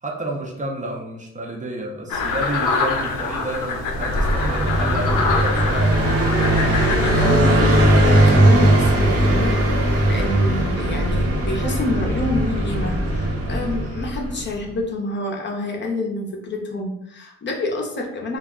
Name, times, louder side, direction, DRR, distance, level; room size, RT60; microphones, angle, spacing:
voice 1, 0.0-6.4, right 1 dB, 25° right, -1 dB, 0.5 m, -30 dB
sound 1, 2.1-7.4, left 4 dB, 85° left, 0.6 m, -25 dB
Car passing by, 3.9-14.5, right 1 dB, 50° right, 0.8 m, -19 dB
voice 2, 6.7-18.4, left 2 dB, 40° left, 0 dB, 0.6 m, -28 dB
2.3 x 2.1 x 3.6 m, 0.76 s
cardioid pair, 90°, 30 cm